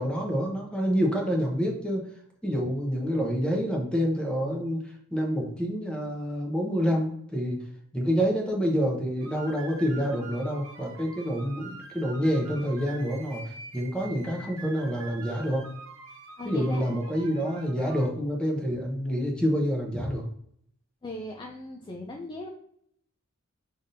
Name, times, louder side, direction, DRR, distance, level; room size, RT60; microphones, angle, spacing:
voice 1, 0.0-2.1 2.4-4.8 5.1-7.6 7.9-15.7 16.4-20.3, equal, 5° left, -1 dB, 0.8 m, -27 dB
sound 1, 9.2-18.1, right 3 dB, 70° right, 1.1 m, -45 dB
voice 2, 16.4-17.0 19.9-20.2 21.0-22.5, left 1 dB, 20° left, 0 dB, 0.4 m, -38 dB
5.5 x 3.5 x 2.6 m, 0.68 s
head